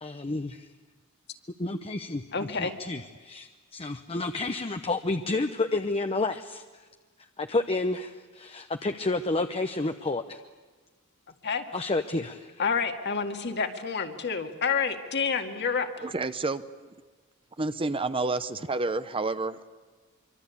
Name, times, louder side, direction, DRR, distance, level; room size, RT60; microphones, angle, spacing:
voice 1, 0.0-0.7 1.6-2.2 2.6-6.6 7.4-10.4 11.7-12.5, left 2 dB, 25° left, 7 dB, 0.8 m, -30 dB
voice 2, 2.3-2.7 11.4-11.6 12.6-15.9, left 5 dB, 55° left, 5 dB, 2.1 m, -28 dB
voice 3, 16.0-16.6 17.6-19.7, right 3 dB, 25° right, 12 dB, 0.7 m, -29 dB
25.0 x 24.5 x 8.5 m, 1.4 s
head